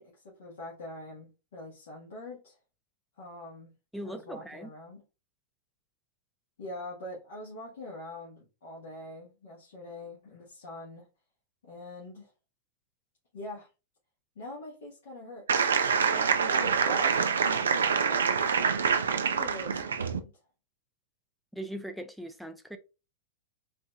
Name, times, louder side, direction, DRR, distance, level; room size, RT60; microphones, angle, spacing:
voice 1, 0.0-2.6 3.2-3.7 4.0-5.0 6.6-11.1 11.6-12.3 13.3-13.7 14.3-18.3 19.1-20.3, left 1 dB, 70° left, 1.4 m, -44 dB
voice 2, 3.9-4.7 21.5-22.8, right 1 dB, ahead, 0.6 m, -40 dB
sound 1, 15.5-20.2, right 6 dB, 80° right, 0.4 m, -26 dB
4.2 x 2.7 x 2.3 m
hypercardioid pair, 105°, 0 cm